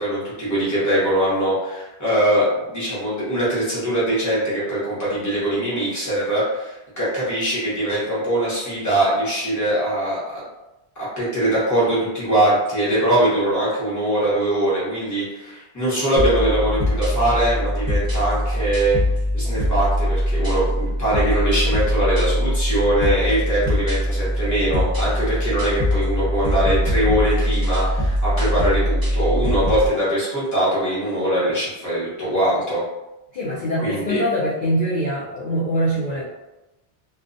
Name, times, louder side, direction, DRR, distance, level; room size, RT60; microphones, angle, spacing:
voice 1, 0.0-10.4 11.0-19.0 19.3-32.8 33.8-34.2, right 1 dB, 20° left, -9 dB, 1.0 m, -22 dB
sound 1, 16.2-29.9, equal, 25° right, 0.6 m, -22 dB
voice 2, 33.3-36.2, equal, 55° left, -9 dB, 0.7 m, -23 dB
2.3 x 2.3 x 2.5 m, 0.99 s
omnidirectional pair, 1.1 m